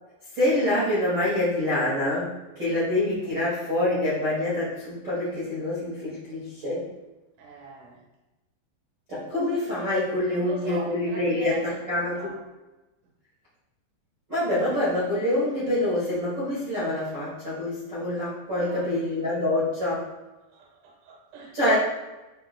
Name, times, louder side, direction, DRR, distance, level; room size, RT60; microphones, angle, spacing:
voice 1, 0.3-6.9 9.1-12.3 14.3-20.1 21.5-21.7, left 1 dB, 35° right, -11 dB, 1.9 m, -26 dB
voice 2, 7.4-8.0 10.3-11.8 12.1-12.4 18.5-18.8 20.5-21.7, right 5 dB, 65° right, -2 dB, 2.1 m, -40 dB
10.5 x 6.4 x 2.3 m, 1.1 s
omnidirectional pair, 5.4 m